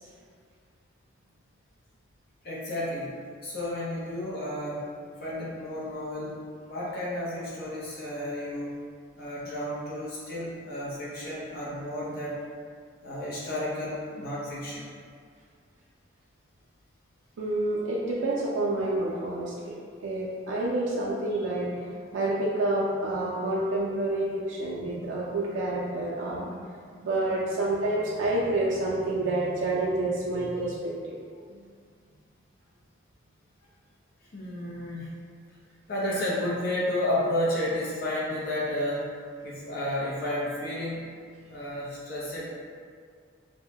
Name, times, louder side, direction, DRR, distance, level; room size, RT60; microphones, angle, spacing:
voice 1, 2.4-4.9 5.2-6.4 6.7-8.8 9.2-12.4 13.0-14.9 34.3-35.1 35.9-39.1 39.4-41.0 41.5-42.5, left 1 dB, 50° left, -7 dB, 0.6 m, -32 dB
voice 2, 17.4-31.2 31.5-31.6, right 2 dB, 80° right, -5 dB, 0.3 m, -29 dB
2.2 x 2.0 x 2.7 m, 2.1 s
head